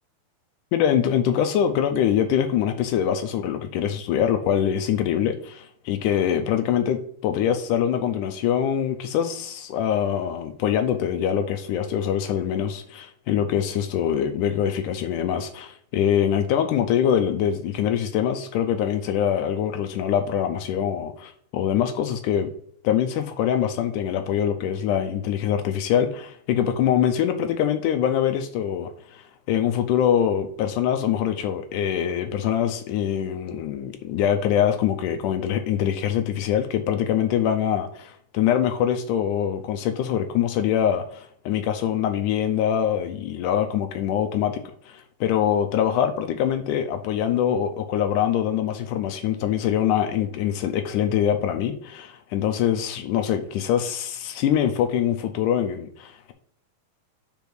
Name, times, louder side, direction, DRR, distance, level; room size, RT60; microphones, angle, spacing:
voice 1, 0.7-22.5 22.8-56.3, left 9 dB, 80° left, 2.1 m, -24 dB
5.3 x 4.7 x 4.6 m
omnidirectional pair, 3.6 m